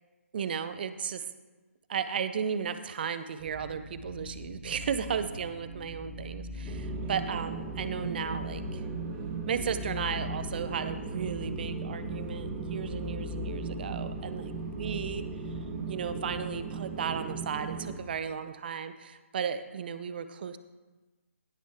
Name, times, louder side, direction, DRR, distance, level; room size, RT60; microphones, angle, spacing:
voice 1, 0.3-1.3 1.9-8.8 9.5-15.2 15.9-20.6, right 7 dB, 40° right, 11 dB, 0.7 m, -35 dB
sound 1, 3.4-16.4, left 2 dB, ahead, 3.2 m, -41 dB
sound 2, 6.6-18.0, right 5 dB, 20° right, 1.2 m, -38 dB
17.0 x 6.2 x 3.5 m, 1.2 s
figure-of-eight pair, 145°, 8 cm